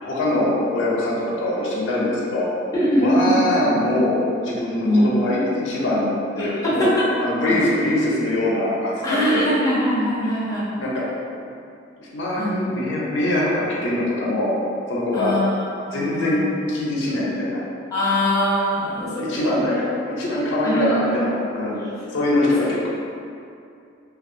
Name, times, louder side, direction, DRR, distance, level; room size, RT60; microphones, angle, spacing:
voice 1, 0.0-2.5 2.9-4.2 4.4-6.9 7.2-9.5 10.7-11.0 12.0-14.5 14.9-15.3 15.9-17.6 19.0-21.8 22.1-22.9, left 1 dB, 70° left, -6 dB, 0.5 m, -23 dB
voice 2, 2.7-3.4 4.8-5.1 6.4-7.0 7.5-7.6 9.0-10.7 12.4-12.7 15.1-16.4 17.9-19.9 20.3-20.4 20.6-21.1, equal, 20° left, -9 dB, 0.5 m, -22 dB
2.6 x 2.3 x 2.6 m, 2.5 s
head